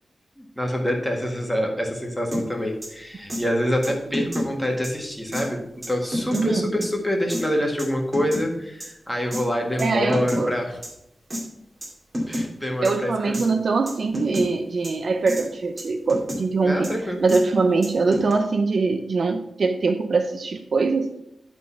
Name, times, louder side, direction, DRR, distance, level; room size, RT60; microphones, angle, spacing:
voice 1, 0.4-10.8 12.3-13.5 16.6-17.2, equal, 5° left, 0 dB, 1.7 m, -26 dB
sound 1, 2.3-2.4 2.8-2.9 3.3-3.4 3.8-4.5 4.8-4.9 5.3-5.5 5.8-6.4 6.8-6.9 7.3-7.4 7.8-8.4 8.8-8.9 9.3-9.4 9.8-10.4 10.8-10.9 11.3-11.4 11.8-11.9 12.1-12.5 12.8-12.9 13.3-13.5 13.9-14.5 14.8-14.9 15.3-15.5 15.8-16.4 16.8-16.9 17.3-17.4 17.8-18.3, equal, 30° right, 2.4 m, -29 dB
voice 2, 6.3-6.7 9.8-10.6 12.8-16.9 17.2-21.1, right 4 dB, 60° right, 7 dB, 0.6 m, -23 dB
10.5 x 4.0 x 5.6 m, 0.82 s
wide cardioid pair, 125°, 0 cm